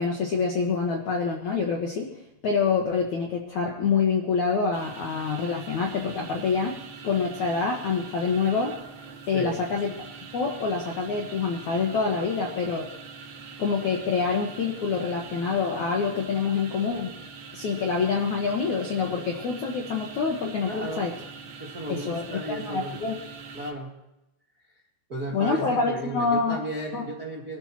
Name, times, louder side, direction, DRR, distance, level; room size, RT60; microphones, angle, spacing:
voice 1, 0.0-2.1 2.4-6.8 7.0-8.8 9.3-9.9 10.3-12.9 13.6-17.1 17.5-21.1 21.9-23.2 25.3-26.6 26.9-27.1, left 5 dB, 65° left, 0 dB, 1.9 m, -26 dB
sound 1, 4.7-23.7, right 5 dB, 60° right, 3.6 m, -43 dB
voice 2, 9.3-9.6 20.6-21.1 21.6-23.0 23.5-23.9 25.1-27.6, right 1 dB, 45° right, -2 dB, 1.2 m, -34 dB
23.5 x 13.5 x 3.1 m, 0.90 s
omnidirectional pair, 5.6 m